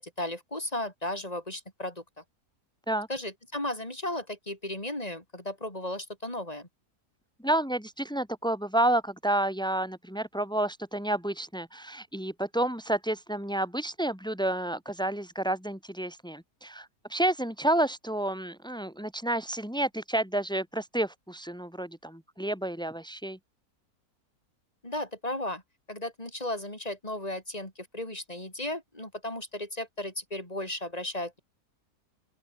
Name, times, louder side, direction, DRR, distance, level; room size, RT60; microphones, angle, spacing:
voice 1, 0.0-2.2 3.1-6.7 24.8-25.6 25.9-31.4, left 1 dB, 25° left, 6.0 m, -35 dB
voice 2, 7.4-23.4, right 1 dB, 5° left, 3.5 m, -30 dB
open air
omnidirectional pair, 1.6 m